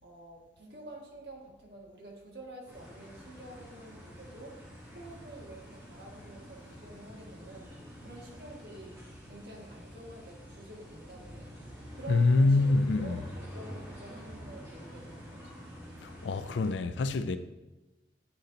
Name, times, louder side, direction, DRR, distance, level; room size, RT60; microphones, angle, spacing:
voice 1, 0.0-4.6 4.9-7.7 8.0-9.0 9.3-11.6 11.9-15.5, right 2 dB, 65° right, 1.6 m, -48 dB
sound 1, 2.7-16.8, equal, 15° right, 1.6 m, -48 dB
voice 2, 12.1-13.2 16.0-17.4, left 3 dB, 90° left, 0.4 m, -25 dB
9.1 x 4.1 x 3.9 m
head